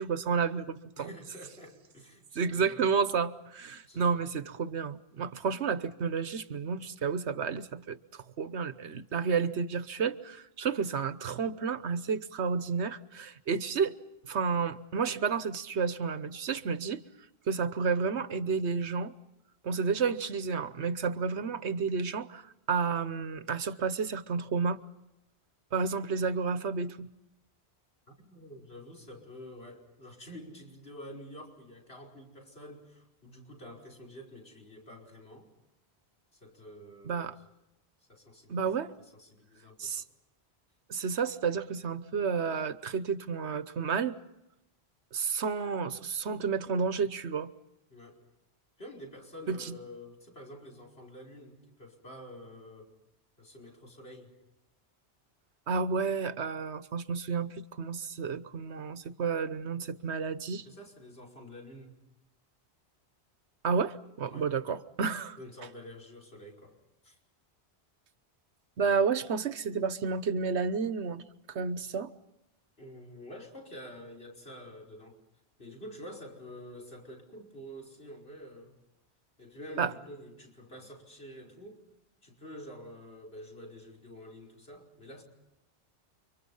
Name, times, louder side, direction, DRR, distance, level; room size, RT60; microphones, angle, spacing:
voice 1, 0.0-1.1 2.3-13.9 14.3-17.0 17.5-19.1 19.6-24.8 25.7-27.1 37.0-37.3 38.5-38.9 39.8-40.0 40.9-44.1 45.1-47.5 49.5-49.7 55.7-60.6 63.6-65.4 68.8-71.2 71.5-72.1 79.8-79.9, right 5 dB, 85° right, 13 dB, 1.3 m, -31 dB
voice 2, 1.0-2.9 3.9-4.2 28.1-35.5 36.3-37.4 38.1-38.7 39.0-39.9 47.9-48.2 48.8-52.9 53.4-54.3 60.7-62.0 64.2-64.5 65.4-66.8 67.0-67.2 72.8-75.2 75.6-78.8 79.4-81.8 82.2-85.2, equal, 65° left, 2 dB, 5.5 m, -48 dB
30.0 x 25.5 x 5.6 m, 0.93 s
omnidirectional pair, 1.1 m